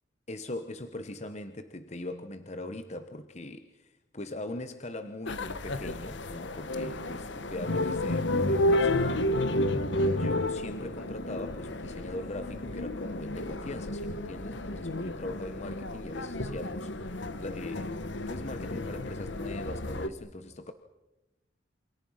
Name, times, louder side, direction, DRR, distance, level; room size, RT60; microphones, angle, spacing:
voice 1, 0.3-9.9 10.2-20.7, left 1 dB, 35° left, 1.1 m, -40 dB
sound 1, 5.3-20.1, left 1 dB, 75° left, 1.3 m, -31 dB
28.5 x 27.5 x 5.7 m
head